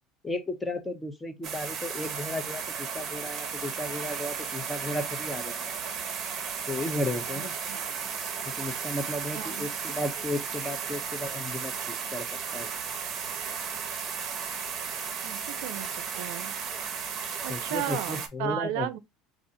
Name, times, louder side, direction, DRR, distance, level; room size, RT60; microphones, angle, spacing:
voice 1, 0.2-5.6 6.7-7.5 8.6-12.3 12.5-12.7 17.5-18.9, left 1 dB, 10° left, 0.6 m, -34 dB
sound 1, 1.4-18.3, right 6 dB, 30° right, 0.7 m, -34 dB
voice 2, 9.3-9.7 15.2-15.9 16.2-16.5 17.4-19.0, right 11 dB, 70° right, 0.5 m, -34 dB
4.8 x 2.4 x 2.7 m
cardioid pair, 160°, 0 cm